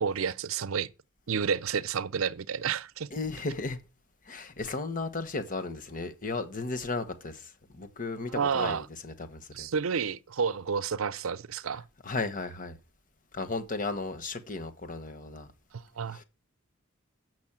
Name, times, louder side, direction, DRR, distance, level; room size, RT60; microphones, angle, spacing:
voice 1, 0.0-0.9 1.3-3.1 8.3-8.9 9.5-11.9 15.7-16.2, right 6 dB, 75° right, 0.6 m, -30 dB
voice 2, 3.1-3.8 4.3-9.7 12.0-12.8 13.3-15.5 16.1-16.2, left 3 dB, 40° left, 1.2 m, -35 dB
7.2 x 6.3 x 7.3 m
head